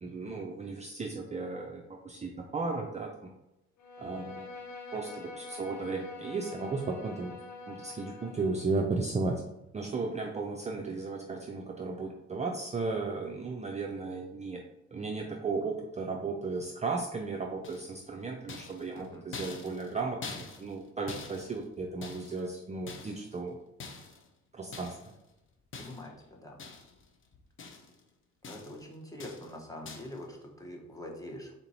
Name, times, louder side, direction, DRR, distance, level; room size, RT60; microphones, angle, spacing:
voice 1, 0.0-3.3 4.0-4.5 4.9-7.3 7.7-9.4 9.7-14.6 14.9-23.5 24.5-25.0, right 3 dB, 25° right, 0 dB, 0.5 m, -35 dB
Bowed string instrument, 3.8-8.7, left 3 dB, 85° left, 0.8 m, -45 dB
sound 1, 17.6-18.1 18.5-20.8 21.1-22.5 22.9-23.4 23.8-24.3 24.7-25.1 25.7-26.2 26.6-27.1 27.3-28.0 28.4-28.8 29.2-29.6 29.8-30.2, left 4 dB, 40° left, 0.7 m, -45 dB
voice 2, 18.9-19.3 25.8-26.6 28.4-31.5, left 1 dB, 10° left, -1 dB, 1.0 m, -44 dB
3.8 x 2.8 x 4.1 m, 0.91 s
cardioid pair, 90°, 30 cm